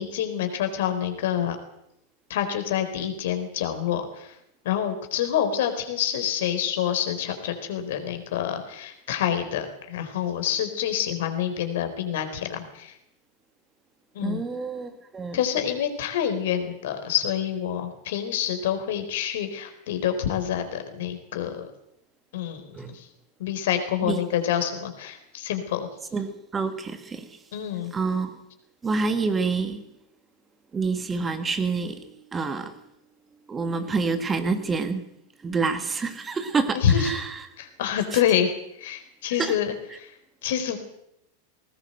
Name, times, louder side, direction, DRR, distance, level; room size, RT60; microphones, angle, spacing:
voice 1, 0.0-1.6 2.3-4.4 4.6-13.0 14.1-14.4 15.3-21.7 22.3-22.6 22.9-23.1 23.4-25.9 27.5-27.9 36.7-37.1 37.6-38.5 38.8-39.7 40.0-40.1 40.4-40.8, left 9 dB, 55° left, 4.1 m, -27 dB
voice 2, 14.2-15.4 22.7-23.0 24.0-24.2 26.1-27.4 27.9-28.4 28.8-29.9 30.7-32.8 33.5-35.1 35.4-37.5 38.1-38.2 39.4-39.6, right 4 dB, 15° right, 1.8 m, -28 dB
20.0 x 19.0 x 7.9 m
figure-of-eight pair, 90°, 0 cm